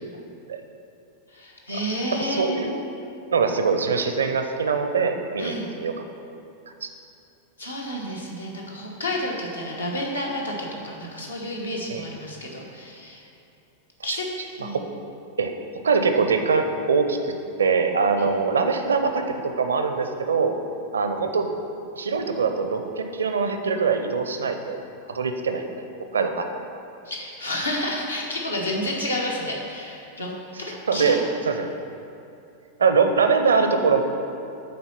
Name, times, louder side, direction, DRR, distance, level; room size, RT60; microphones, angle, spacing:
voice 1, 1.3-2.6 5.4-5.7 7.6-13.2 14.0-14.3 14.6-14.8 18.2-18.3 27.0-30.3 30.6-31.2, left 1 dB, 80° left, -2 dB, 1.2 m, -30 dB
voice 2, 2.2-2.7 3.3-6.0 6.8-6.9 11.9-12.0 14.0-14.2 14.6-14.8 15.4-15.5 15.8-17.3 17.6-20.5 20.9-21.5 22.0-24.8 25.1-25.6 26.1-26.5 30.7-31.2 31.5-31.7 32.8-34.0, right 5 dB, 70° right, 6 dB, 0.6 m, -23 dB
8.6 x 4.1 x 5.9 m, 2.7 s
figure-of-eight pair, 90°, 0 cm